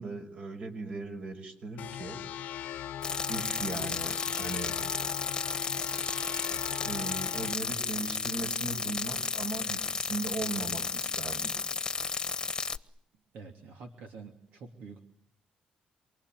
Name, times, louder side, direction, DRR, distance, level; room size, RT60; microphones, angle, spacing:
voice 1, 0.0-2.2 3.3-4.7 6.8-11.5, right 3 dB, 55° right, 6 dB, 6.0 m, -38 dB
sound 1, 1.8-7.5, left 11 dB, 90° left, 1.1 m, -39 dB
sound 2, 3.0-12.8, left 4 dB, 30° left, 1.3 m, -33 dB
voice 2, 13.3-15.0, right 4 dB, 80° right, 3 dB, 3.0 m, -47 dB
28.5 x 22.5 x 9.2 m, 0.71 s
cardioid pair, 110°, 3 cm